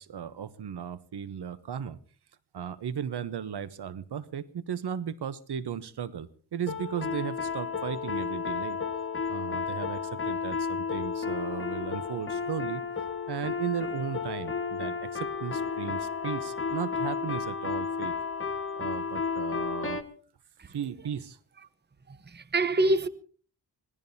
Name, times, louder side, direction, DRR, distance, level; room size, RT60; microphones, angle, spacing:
voice 1, 0.0-2.0 2.5-8.8 9.3-12.8 13.3-18.1 18.8-20.0 20.7-21.4, right 8 dB, 70° right, 1.0 m, -36 dB
sound 1, 6.7-20.0, left 5 dB, 30° left, 1.5 m, -32 dB
voice 2, 22.1-23.1, right 2 dB, 25° right, 0.9 m, -26 dB
25.5 x 17.5 x 2.8 m
wide cardioid pair, 105°, 41 cm